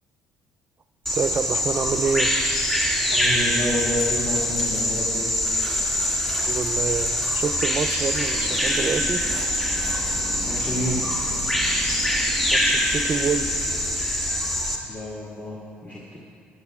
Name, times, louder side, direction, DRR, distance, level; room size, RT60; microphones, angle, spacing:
Bird vocalization bird call bird song, 1.1-14.8, equal, 10° left, 2.3 m, -24 dB
voice 1, 1.1-2.3 6.4-9.2 12.5-13.9, right 5 dB, 35° right, 11 dB, 0.5 m, -27 dB
voice 2, 3.1-5.3 10.4-11.1 14.8-16.2, left 1 dB, 35° left, -6 dB, 1.9 m, -30 dB
sound 1, 8.3-14.0, left 1 dB, 70° left, 2.6 m, -38 dB
15.0 x 9.3 x 2.4 m, 2.4 s
supercardioid pair, 65°, 5 cm